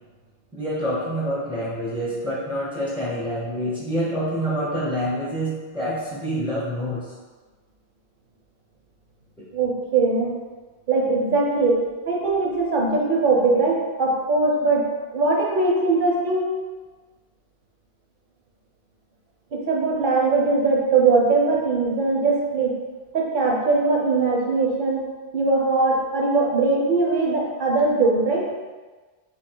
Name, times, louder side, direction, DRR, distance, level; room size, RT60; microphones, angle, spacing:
voice 1, 0.5-7.0, equal, ahead, -8 dB, 0.6 m, -27 dB
voice 2, 9.5-10.3 10.9-16.5 19.5-22.7 23.1-25.1 25.3-28.5, right 3 dB, 55° right, -1 dB, 0.8 m, -21 dB
3.2 x 2.7 x 4.4 m, 1.3 s
omnidirectional pair, 1.1 m